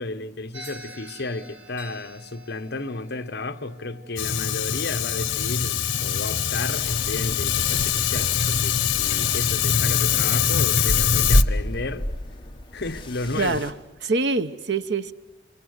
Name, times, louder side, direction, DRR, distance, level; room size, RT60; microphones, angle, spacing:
voice 1, 0.0-12.1 12.7-13.6, left 2 dB, 60° left, 1.1 m, -33 dB
sound 1, 0.5-8.9, equal, 85° right, 5.0 m, -49 dB
Fire, 4.2-11.4, left 8 dB, 85° left, 0.9 m, -23 dB
sound 2, 6.7-13.7, equal, 25° left, 1.7 m, -29 dB
voice 2, 13.4-13.7 14.0-15.1, right 3 dB, 65° right, 1.0 m, -24 dB
28.0 x 24.0 x 8.0 m
head